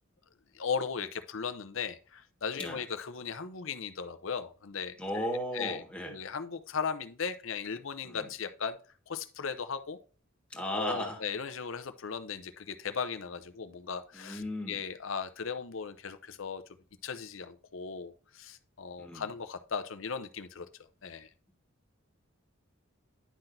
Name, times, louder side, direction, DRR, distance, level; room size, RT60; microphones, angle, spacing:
voice 1, 0.5-5.3 5.5-5.8 6.1-8.8 9.1-10.0 10.7-16.6 17.0-20.7 21.0-21.3, left 6 dB, 75° left, 10 dB, 0.7 m, -37 dB
voice 2, 5.0-6.2 8.0-8.3 10.5-11.2 14.1-14.8 19.0-19.2, equal, 5° left, 1 dB, 1.6 m, -35 dB
10.5 x 5.9 x 2.6 m, 0.37 s
head